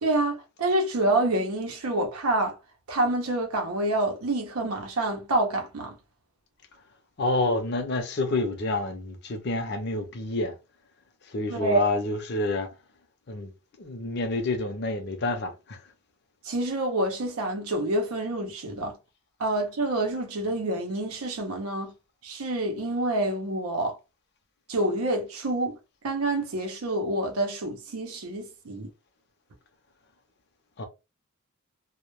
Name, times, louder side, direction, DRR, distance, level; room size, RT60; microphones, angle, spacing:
voice 1, 0.0-2.6 2.9-6.0 11.5-11.8 16.4-19.0 19.4-21.9 22.2-24.0 24.7-25.8 26.0-28.9, right 1 dB, 75° right, 0.6 m, -27 dB
voice 2, 7.2-10.5 11.3-12.7 13.3-13.5 13.8-15.8 30.8-30.9, left 2 dB, 50° left, 0.5 m, -28 dB
2.1 x 2.1 x 3.0 m
head